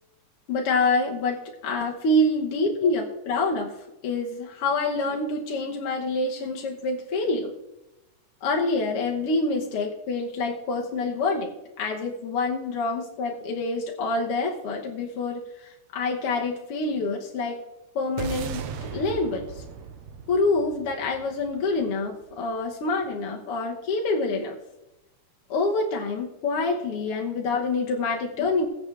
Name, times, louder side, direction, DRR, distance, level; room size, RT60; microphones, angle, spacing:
voice 1, 0.5-1.4 1.6-3.7 4.0-7.5 8.4-17.6 17.9-19.6 20.3-24.6 25.5-28.7, left 2 dB, 60° left, 0 dB, 1.6 m, -26 dB
sound 1, 18.2-22.6, right 7 dB, 70° right, 1.6 m, -37 dB
21.0 x 7.3 x 3.3 m, 0.95 s
omnidirectional pair, 3.7 m